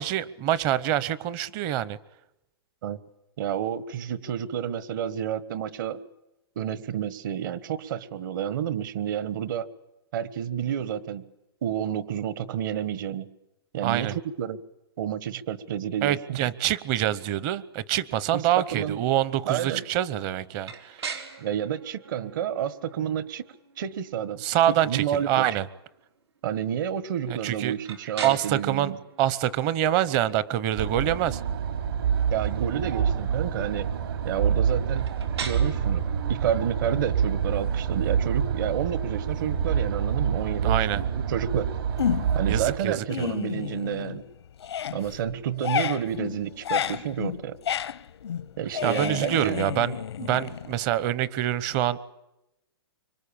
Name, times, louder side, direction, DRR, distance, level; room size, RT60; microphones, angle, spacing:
voice 1, 0.0-2.0 13.8-14.2 16.0-21.2 24.4-25.7 27.3-27.7 28.2-28.9 29.2-31.4 40.6-41.0 42.5-43.3 48.8-52.0, right 12 dB, 30° right, 18 dB, 0.9 m, -26 dB
voice 2, 3.4-6.0 6.5-9.7 10.1-11.2 11.6-13.3 13.7-14.6 15.0-16.4 18.3-18.4 18.7-19.0 19.4-19.8 21.4-23.4 23.8-25.6 26.4-29.0 32.3-33.9 34.2-35.1 35.4-36.0 36.3-41.7 42.3-44.2 44.9-47.6 48.6-49.6, right 9 dB, 50° right, 16 dB, 1.5 m, -30 dB
sound 1, 20.6-40.4, right 6 dB, 90° right, 4.4 m, -44 dB
sound 2, 30.8-42.8, right 7 dB, 65° right, 3.8 m, -27 dB
sound 3, 42.0-42.5 42.9-44.3 44.6-51.1, left 9 dB, 85° left, 0.9 m, -31 dB
25.0 x 24.0 x 8.7 m, 0.92 s
hypercardioid pair, 160°, 13 cm